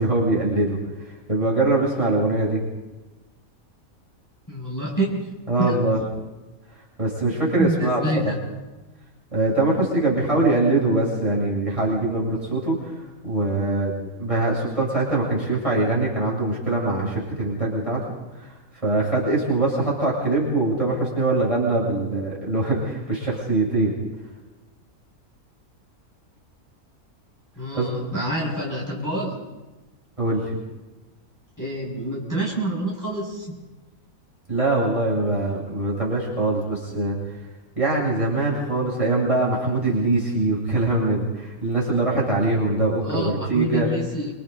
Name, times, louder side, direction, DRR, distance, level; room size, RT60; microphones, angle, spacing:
voice 1, 0.0-2.6 5.5-6.0 7.0-8.3 9.3-13.0 13.2-13.9 14.2-18.0 18.4-18.5 18.8-23.9 27.7-27.9 30.2-30.6 34.5-37.2 37.8-43.9, right 2 dB, 20° right, -6 dB, 7.2 m, -23 dB
voice 2, 4.5-5.8 7.6-8.4 27.6-29.4 31.6-33.5 43.0-44.3, right 1 dB, 10° left, -5 dB, 6.8 m, -27 dB
28.5 x 27.0 x 4.1 m, 1.1 s
omnidirectional pair, 1.5 m